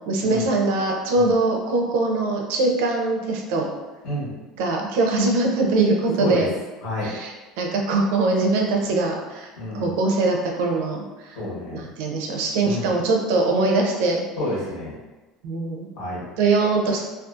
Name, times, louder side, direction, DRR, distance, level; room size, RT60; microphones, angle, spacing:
voice 1, 0.1-3.7 4.6-6.5 7.0-9.5 9.7-11.4 11.7-14.2 15.4-15.9 16.4-17.0, right 3 dB, 75° right, 1 dB, 0.4 m, -22 dB
voice 2, 6.8-7.1 9.6-9.9 11.3-11.8 12.6-12.9 14.4-14.9 16.0-16.2, left 1 dB, 55° left, -7 dB, 1.1 m, -29 dB
2.5 x 2.3 x 2.4 m, 1.1 s
cardioid pair, 170°, 0 cm